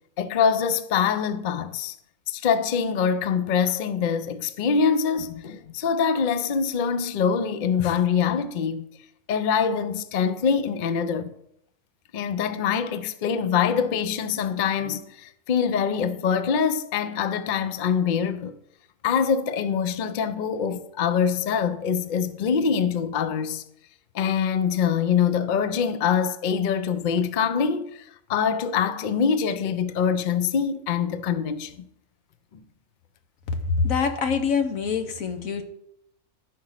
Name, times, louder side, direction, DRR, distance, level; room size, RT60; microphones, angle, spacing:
voice 1, 0.2-1.9 2.3-8.9 9.3-11.3 12.1-18.5 19.0-23.6 24.1-31.9, left 7 dB, 55° left, 0.6 m, -24 dB
voice 2, 33.8-35.6, left 5 dB, 80° left, 1.4 m, -25 dB
11.0 x 5.0 x 5.7 m
omnidirectional pair, 1.4 m